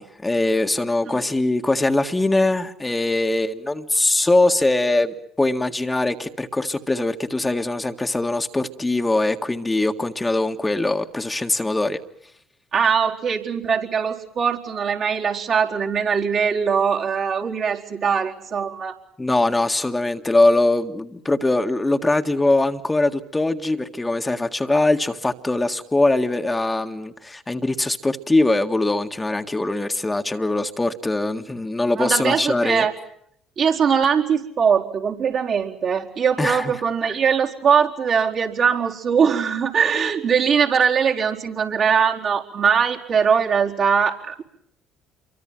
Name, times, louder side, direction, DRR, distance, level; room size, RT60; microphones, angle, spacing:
voice 1, 0.0-12.0 19.2-32.8 36.4-36.7, left 2 dB, 15° left, 5 dB, 1.8 m, -22 dB
voice 2, 12.7-19.0 32.0-32.9 33.6-44.4, right 6 dB, 55° right, -1 dB, 4.4 m, -21 dB
28.0 x 24.0 x 7.7 m, 0.72 s
hypercardioid pair, 55°, 0 cm